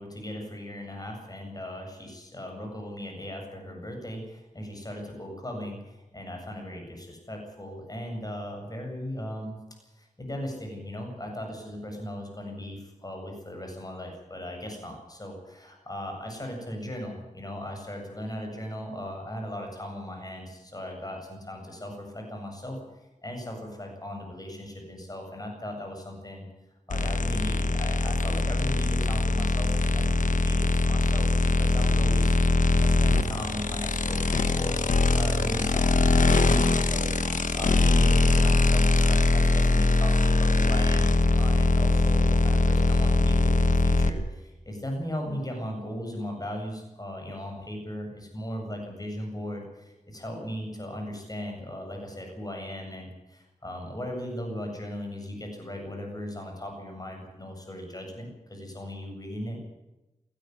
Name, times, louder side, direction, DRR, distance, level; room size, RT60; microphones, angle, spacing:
voice 1, 0.0-9.6 10.0-26.4 26.9-59.6, left 1 dB, 30° left, 2 dB, 7.9 m, -37 dB
sound 1, 26.9-44.1, left 2 dB, 85° left, 1.4 m, -22 dB
19.0 x 16.0 x 9.6 m, 0.98 s
cardioid pair, 55°, 13 cm